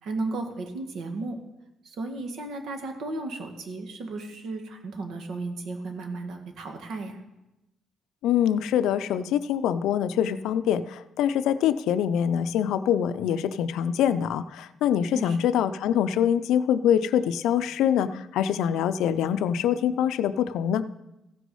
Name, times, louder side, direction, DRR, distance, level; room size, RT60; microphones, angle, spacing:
voice 1, 0.0-1.3 1.8-7.2 15.1-15.5, right 3 dB, 75° right, 5 dB, 1.7 m, -34 dB
voice 2, 8.2-20.8, left 9 dB, 85° left, 12 dB, 0.5 m, -24 dB
15.0 x 6.2 x 5.4 m, 0.95 s
cardioid pair, 90°, 0 cm